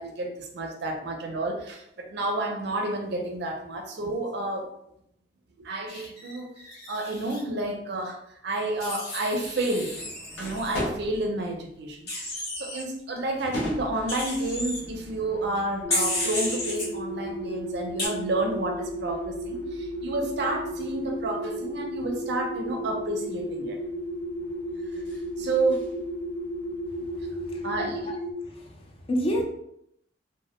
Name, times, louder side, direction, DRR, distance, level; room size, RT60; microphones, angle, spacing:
voice 1, 0.0-4.7 5.6-6.5 6.9-9.9 10.4-23.8 25.4-25.8 27.6-28.1, right 2 dB, 65° right, 2 dB, 0.4 m, -30 dB
Wild animals, 5.9-7.4 8.8-10.8 12.1-12.8 14.1-14.8 15.9-16.9 18.0-18.1, left 1 dB, 60° left, 1.0 m, -32 dB
sound 1, 9.4-28.0, equal, 80° left, 0.7 m, -43 dB
sound 2, 15.8-28.3, equal, 15° right, 0.6 m, -34 dB
voice 2, 26.9-28.2 28.4-29.4, equal, 30° left, 1 dB, 0.4 m, -32 dB
2.1 x 2.0 x 2.9 m, 0.77 s
head